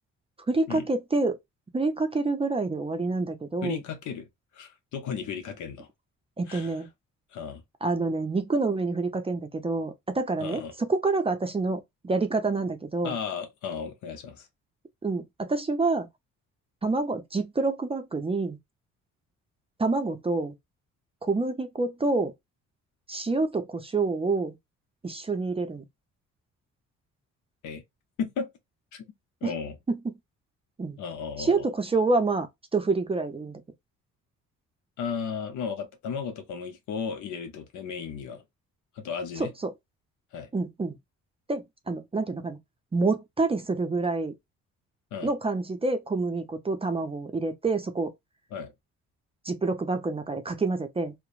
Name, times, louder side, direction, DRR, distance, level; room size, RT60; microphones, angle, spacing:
voice 1, 0.5-1.4 1.7-3.8 6.4-6.9 7.8-13.2 15.0-16.1 16.8-18.6 19.8-20.5 21.2-22.3 23.1-24.5 25.0-25.8 29.4-29.5 29.9-30.1 30.8-31.0 31.4-32.5 32.7-33.6 39.4-39.7 40.5-41.0 41.5-42.6 42.9-44.3 45.2-48.1 49.4-51.1, right 3 dB, 20° right, 0.5 m, -27 dB
voice 2, 3.6-5.9 6.5-6.8 7.3-7.6 10.4-10.7 13.0-14.5 27.6-27.8 28.2-28.5 28.9-29.1 29.4-29.8 31.0-31.7 35.0-38.4 38.9-39.5 40.3-40.5 45.1-45.3 48.5-48.7, left 6 dB, 75° left, 0.7 m, -35 dB
2.8 x 2.1 x 2.3 m
cardioid pair, 90°, 30 cm